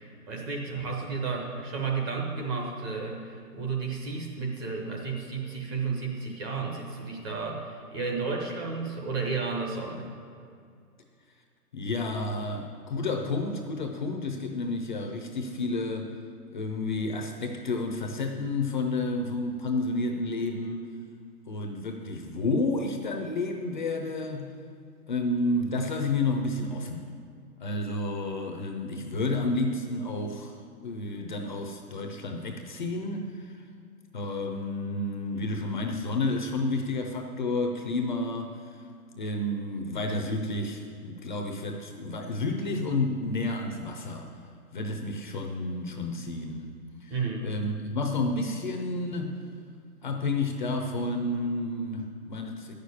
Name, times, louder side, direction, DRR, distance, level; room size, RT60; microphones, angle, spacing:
voice 1, 0.0-10.1 47.1-47.4, right 4 dB, 15° right, -1 dB, 0.8 m, -32 dB
voice 2, 11.7-16.1 16.5-20.9 21.5-24.5 25.1-27.1 27.6-30.6 30.8-33.6 34.1-38.8 39.2-44.3 44.7-47.2 47.4-49.4 50.0-52.7, left 2 dB, 30° left, 3 dB, 0.7 m, -30 dB
9.2 x 6.6 x 8.4 m, 2.3 s
hypercardioid pair, 150°, 47 cm